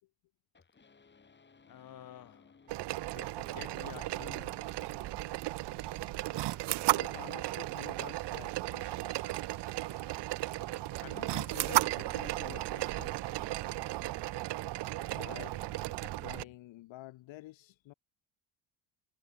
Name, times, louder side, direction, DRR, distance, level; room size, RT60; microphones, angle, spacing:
sound 1, 0.5-16.5, left 5 dB, 20° left, 4.5 m, -60 dB
voice 1, 1.7-2.6 3.0-4.9 10.9-13.5, left 11 dB, 45° left, 2.0 m, -50 dB
sound 2, 2.7-16.4, right 18 dB, 60° right, 0.8 m, -35 dB
voice 2, 6.9-9.4 15.1-15.6 16.0-17.9, left 17 dB, 70° left, 1.7 m, -50 dB
cardioid pair, 135°, 48 cm